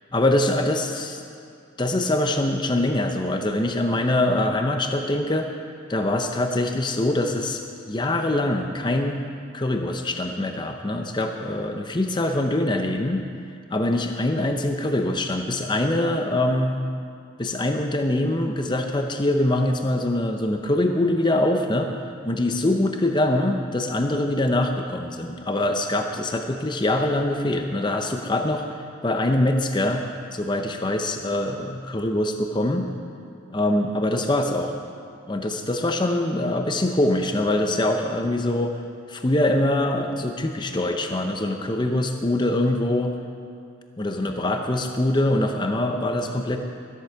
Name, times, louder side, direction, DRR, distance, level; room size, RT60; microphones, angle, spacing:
voice 1, 0.1-1.2 1.8-5.5 5.9-7.6 7.9-9.2 9.5-13.3 13.7-16.8 17.4-21.9 22.2-30.0 30.3-32.9 33.5-34.7 35.3-38.8 39.1-43.1 44.0-46.6, left 1 dB, 20° left, 4 dB, 0.6 m, -23 dB
13.5 x 8.2 x 6.8 m, 2.4 s
head